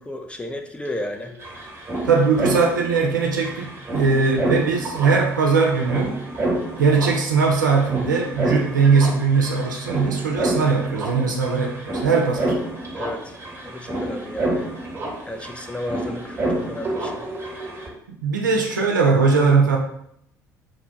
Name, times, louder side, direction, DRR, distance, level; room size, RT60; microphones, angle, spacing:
voice 1, 0.0-1.4 12.9-14.7 15.3-17.3, left 1 dB, 10° left, 3 dB, 0.4 m, -33 dB
sound 1, 0.8-0.9 1.1-17.9, right 1 dB, 25° right, 0.9 m, -29 dB
voice 2, 2.0-6.2 6.8-12.6 18.2-19.8, right 5 dB, 80° right, 1 dB, 0.4 m, -20 dB
2.9 x 2.1 x 2.7 m, 0.71 s
figure-of-eight pair, 55°, 10 cm